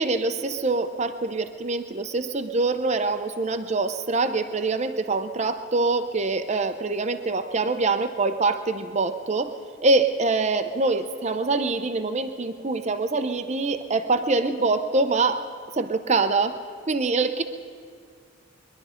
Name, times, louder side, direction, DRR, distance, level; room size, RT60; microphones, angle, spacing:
voice 1, 0.0-9.5 9.8-15.5 15.8-16.6 16.9-17.4, right 3 dB, 30° right, 8 dB, 0.6 m, -24 dB
22.5 x 11.5 x 5.1 m, 2.1 s
head